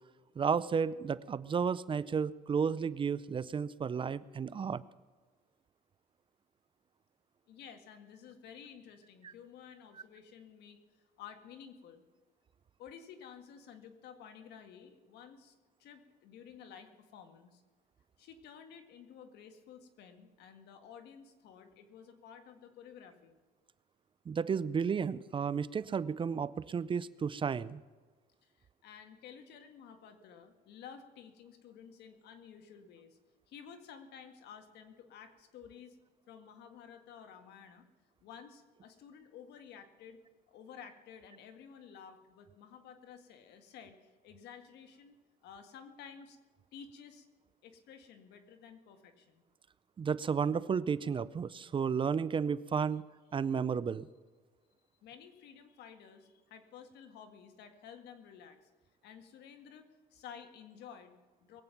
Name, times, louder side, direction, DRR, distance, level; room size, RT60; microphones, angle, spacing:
voice 1, 0.4-4.8 24.3-27.8 50.0-53.0 53.3-54.1, right 6 dB, 30° right, 18 dB, 0.5 m, -32 dB
voice 2, 7.5-12.0 12.8-17.6 18.2-23.4 28.4-33.2 33.5-36.0 36.3-37.9 38.2-40.2 40.5-46.4 46.7-47.3 47.6-49.4 55.0-58.7 59.0-61.6, left 7 dB, 80° left, 7 dB, 1.9 m, -53 dB
21.5 x 8.7 x 5.9 m, 1.4 s
cardioid pair, 110°, 17 cm